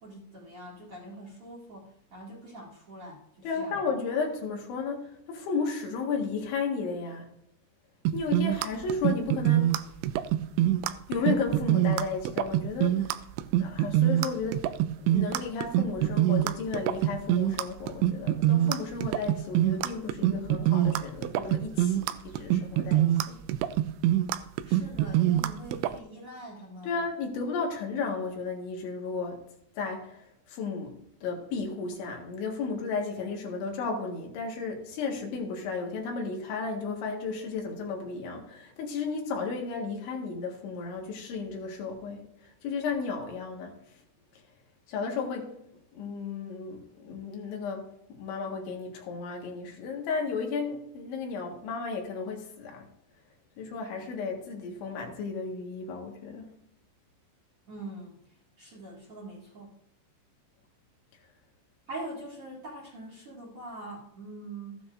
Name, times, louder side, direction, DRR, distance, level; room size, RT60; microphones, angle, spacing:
voice 1, 0.0-3.8 24.6-27.0 57.7-58.2 58.6-59.7 61.9-64.8, right 1 dB, 40° right, -4 dB, 2.3 m, -43 dB
voice 2, 3.4-7.3 8.1-9.7 10.6-10.7 11.1-13.2 13.6-14.7 15.0-23.4 26.8-29.4 29.8-30.2 30.5-30.9 31.2-42.3 42.6-43.8 44.9-45.5 45.9-52.9 53.6-56.5, left 4 dB, 85° left, 1 dB, 4.1 m, -33 dB
sound 1, 8.1-26.0, right 13 dB, 85° right, 2.8 m, -25 dB
14.5 x 9.9 x 2.6 m, 0.79 s
omnidirectional pair, 5.2 m